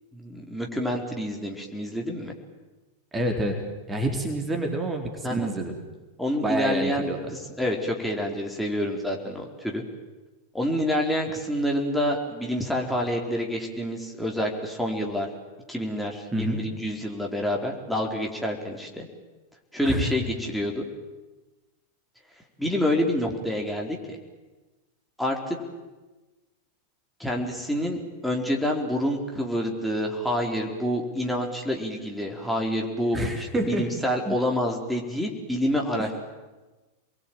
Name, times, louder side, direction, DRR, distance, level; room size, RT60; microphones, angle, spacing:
voice 1, 0.1-2.3 5.2-5.5 6.2-7.1 7.6-9.8 10.5-15.3 15.7-19.1 19.7-20.8 22.6-24.0 25.2-25.6 27.2-36.1, equal, ahead, -1 dB, 4.3 m, -27 dB
voice 2, 3.1-3.6 3.9-5.8 6.4-7.3 16.3-16.6 19.8-20.1 33.1-33.9 34.3-34.4, right 1 dB, 15° right, 3 dB, 4.1 m, -28 dB
29.5 x 21.5 x 9.1 m, 1.2 s
figure-of-eight pair, 90°, 0 cm